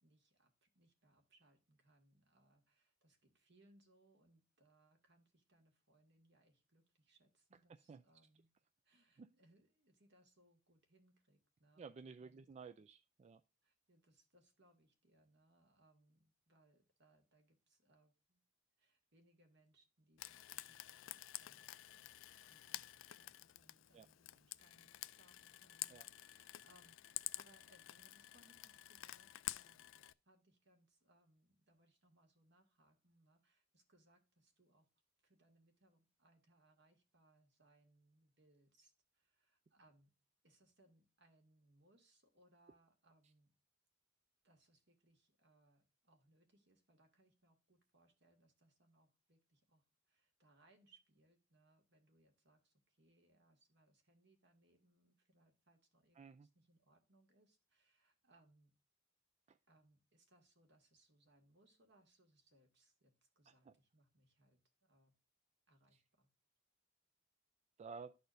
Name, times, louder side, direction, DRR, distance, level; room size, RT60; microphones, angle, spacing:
voice 1, 0.0-8.5 8.8-12.5 12.8-12.9 13.6-18.4 18.8-34.9 35.2-40.1 40.4-43.5 44.4-58.7 59.7-65.1 65.7-66.3, right 1 dB, 60° right, 4 dB, 2.0 m, -73 dB
voice 2, 11.8-13.4 23.9-24.1 25.9-26.0 56.2-56.5 59.5-59.6 63.7-63.8 67.8-68.2, right 5 dB, 35° right, 10 dB, 0.3 m, -53 dB
Frying (food), 20.2-30.1, left 15 dB, 70° left, 0.4 m, -50 dB
12.5 x 4.2 x 2.6 m, 0.30 s
head